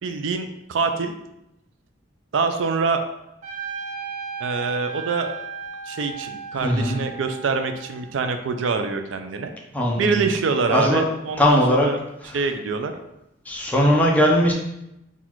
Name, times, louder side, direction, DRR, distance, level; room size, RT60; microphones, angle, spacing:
voice 1, 0.0-1.1 2.3-3.0 4.4-5.3 5.9-9.5 10.0-12.0 12.3-12.9, right 4 dB, 90° right, 7 dB, 0.4 m, -25 dB
Trumpet, 3.4-8.1, right 5 dB, 40° right, 0.5 m, -35 dB
voice 2, 6.6-7.0 9.7-10.2 10.7-11.1 11.4-11.9 13.5-14.5, left 1 dB, 10° left, -2 dB, 0.6 m, -19 dB
4.0 x 2.4 x 4.4 m, 0.86 s
head